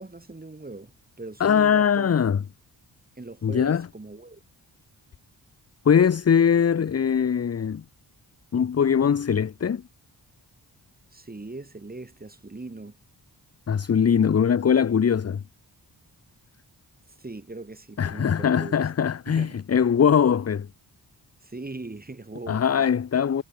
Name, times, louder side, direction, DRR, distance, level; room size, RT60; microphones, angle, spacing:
voice 1, 0.0-2.1 3.2-4.4 11.1-13.0 17.2-18.8 19.3-19.6 21.4-22.8, right 2 dB, 20° right, 1.6 m, -40 dB
voice 2, 1.4-2.4 3.4-3.9 5.9-7.8 8.5-9.8 13.7-15.4 18.0-20.7 22.5-23.4, left 7 dB, 35° left, 0.6 m, -21 dB
wide cardioid pair, 85°, 42 cm